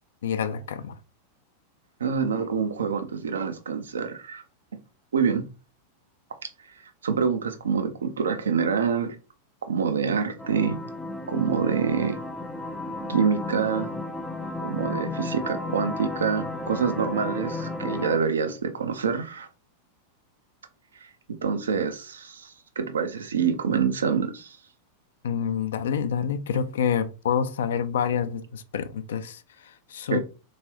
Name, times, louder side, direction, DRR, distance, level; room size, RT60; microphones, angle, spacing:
voice 1, 0.2-1.0 25.2-30.2, left 7 dB, 60° left, 0.4 m, -27 dB
voice 2, 2.0-4.4 5.1-5.4 7.0-9.2 9.6-10.8 11.3-12.2 13.1-13.9 14.6-19.5 21.0-21.1 21.4-24.6 30.1-30.2, right 6 dB, 70° right, 0.6 m, -26 dB
sound 1, 10.4-18.2, left 2 dB, ahead, 0.5 m, -33 dB
3.7 x 3.1 x 2.9 m
figure-of-eight pair, 90°, 0 cm